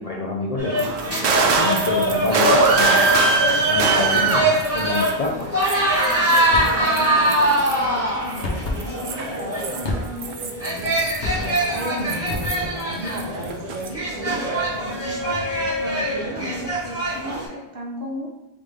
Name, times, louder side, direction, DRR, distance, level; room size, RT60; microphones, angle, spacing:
voice 1, 0.0-5.6, left 3 dB, 45° left, -1 dB, 0.5 m, -28 dB
sound 1, 0.6-17.4, right 1 dB, 15° right, 1.4 m, -23 dB
sound 2, 0.7-5.3 5.6-7.8 8.3-12.8 13.1-13.9, right 4 dB, 90° right, 0.8 m, -23 dB
sound 3, 6.5-6.8 8.4-8.8 9.8-10.4 11.2-11.7 12.3-12.9, left 2 dB, 70° left, 1.1 m, -28 dB
voice 2, 6.6-11.0 11.3-15.4 15.8-18.3, equal, 60° right, -3 dB, 1.2 m, -34 dB
3.8 x 3.5 x 3.5 m, 0.98 s
omnidirectional pair, 1.1 m